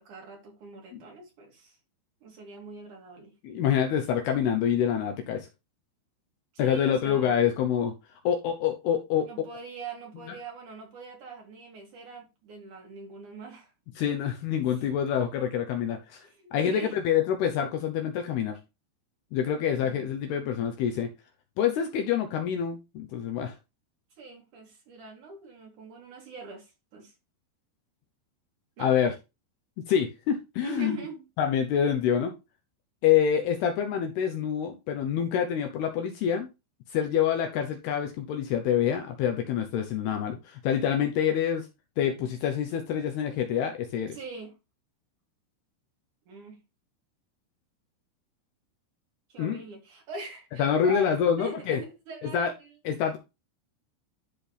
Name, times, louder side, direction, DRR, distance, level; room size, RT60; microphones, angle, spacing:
voice 1, 0.0-1.8 2.2-3.3 6.5-7.4 9.3-13.7 16.2-16.9 19.8-20.0 24.2-27.1 28.8-28.9 30.6-31.3 44.1-44.5 46.3-46.6 49.3-52.8, right 3 dB, 45° right, 3.6 m, -42 dB
voice 2, 3.4-5.5 6.6-7.9 8.2-9.3 10.3-10.4 14.0-16.3 16.5-18.6 19.3-21.1 21.6-23.5 28.8-29.1 29.9-31.0 31.4-32.3 33.0-36.5 36.9-41.7 42.0-44.2 49.4-49.6 50.6-51.8 52.3-52.5 52.9-53.2, left 8 dB, 75° left, 2.5 m, -26 dB
12.5 x 4.3 x 3.4 m
omnidirectional pair, 5.5 m